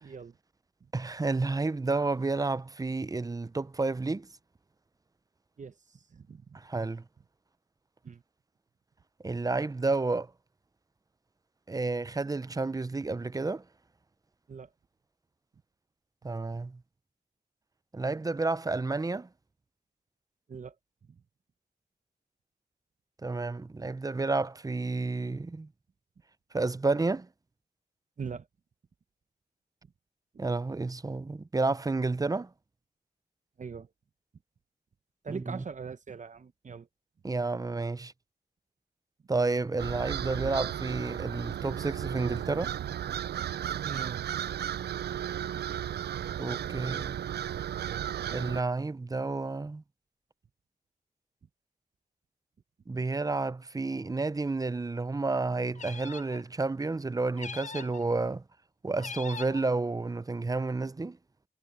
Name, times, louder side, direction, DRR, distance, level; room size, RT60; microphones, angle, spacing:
voice 1, 0.0-0.4 5.6-6.6 8.0-8.2 14.5-14.7 20.5-20.8 21.1-21.2 28.2-28.5 33.6-33.9 35.2-36.9 43.8-44.2, right 5 dB, 50° right, 0.8 m, -41 dB
voice 2, 0.9-4.3 6.5-7.0 9.2-10.3 11.7-13.6 16.2-16.8 17.9-19.3 23.2-25.7 26.5-27.3 30.4-32.5 35.3-35.6 37.2-38.1 39.3-42.7 46.4-47.2 48.3-49.8 52.9-58.4 58.8-61.2, right 3 dB, 20° right, 0.5 m, -30 dB
sound 1, 39.8-48.6, right 10 dB, 80° right, 0.4 m, -34 dB
sound 2, 55.7-56.4 57.4-58.0 59.0-59.7, left 5 dB, 50° left, 0.6 m, -41 dB
cardioid pair, 80°, 17 cm